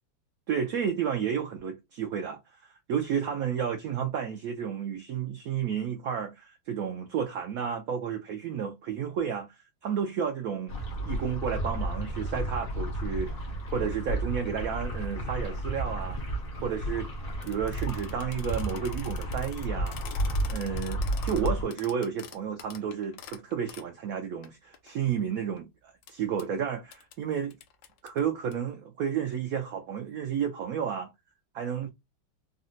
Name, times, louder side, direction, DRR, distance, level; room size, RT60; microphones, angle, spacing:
voice 1, 0.5-16.2 16.6-17.1 17.5-20.0 20.5-27.6 28.0-31.1 31.5-31.9, right 7 dB, 80° right, 0.8 m, -32 dB
sound 1, 10.7-21.6, right 1 dB, 50° left, 0.6 m, -32 dB
sound 2, 17.4-23.9 24.4-24.5 24.7-25.6 26.0-26.1 26.4-26.5 26.9-27.1 27.5-28.5, left 9 dB, 85° left, 1.3 m, -47 dB
3.8 x 2.1 x 2.6 m
omnidirectional pair, 2.0 m